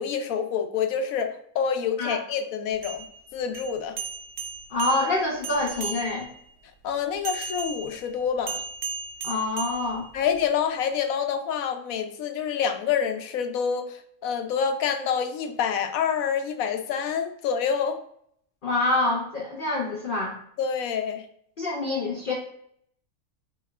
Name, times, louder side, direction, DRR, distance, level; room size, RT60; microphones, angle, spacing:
voice 1, 0.0-3.0 3.3-4.0 6.8-8.6 10.1-18.0 20.6-21.2, left 7 dB, 75° left, 7 dB, 1.0 m, -27 dB
sound 1, 2.7-6.4 7.2-10.4, right 5 dB, 65° right, 1.0 m, -36 dB
voice 2, 4.7-6.3 9.2-10.1 18.6-20.3 21.6-22.3, left 2 dB, 45° left, -2 dB, 0.8 m, -26 dB
5.3 x 2.9 x 2.4 m, 0.68 s
omnidirectional pair, 1.5 m